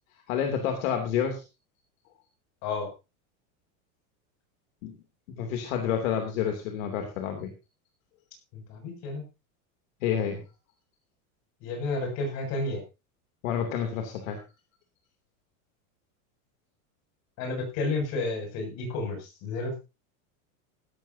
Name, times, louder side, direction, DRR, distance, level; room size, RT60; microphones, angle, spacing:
voice 1, 0.3-1.4 4.8-4.9 5.4-7.5 10.0-10.4 13.4-14.4, left 8 dB, 65° left, 4 dB, 3.0 m, -29 dB
voice 2, 8.5-9.2 11.6-12.8 17.4-19.8, left 3 dB, 40° left, 3 dB, 7.1 m, -31 dB
16.5 x 14.5 x 2.8 m, 0.28 s
supercardioid pair, 170°, 43 cm